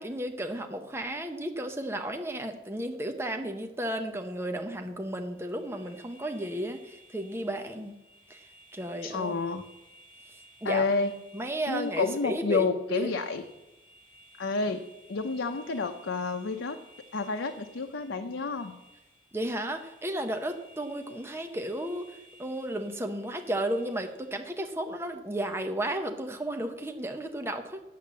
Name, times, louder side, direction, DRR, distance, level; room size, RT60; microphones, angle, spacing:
voice 1, 0.0-7.9 8.3-9.3 10.6-10.8 11.3-13.1 19.3-27.8, right 1 dB, 15° right, 5 dB, 0.7 m, -33 dB
sound 1, 5.3-24.5, right 1 dB, 25° left, 2.3 m, -57 dB
voice 2, 9.0-9.6 10.6-11.1 11.7-13.4 14.4-14.8 15.1-16.8 17.1-18.8, left 4 dB, 85° left, 5 dB, 0.7 m, -29 dB
8.7 x 7.6 x 7.4 m, 0.97 s
head